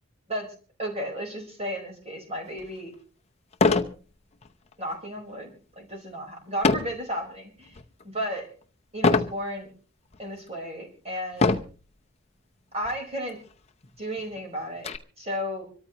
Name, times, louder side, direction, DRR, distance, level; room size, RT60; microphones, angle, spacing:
voice 1, 0.8-2.9 4.8-7.8 8.0-8.5 8.9-9.7 10.2-11.5 12.7-13.4 14.0-15.7, equal, 30° right, 1 dB, 4.5 m, -33 dB
sound 1, 2.6-2.7 3.5-4.0 4.4-4.7 6.6-7.0 7.6-8.0 9.0-9.4 10.1-10.2 11.3-11.8 12.8-13.0 13.3-13.4 13.8-15.0, left 3 dB, 30° left, 0.7 m, -23 dB
25.5 x 13.5 x 3.0 m, 0.38 s
head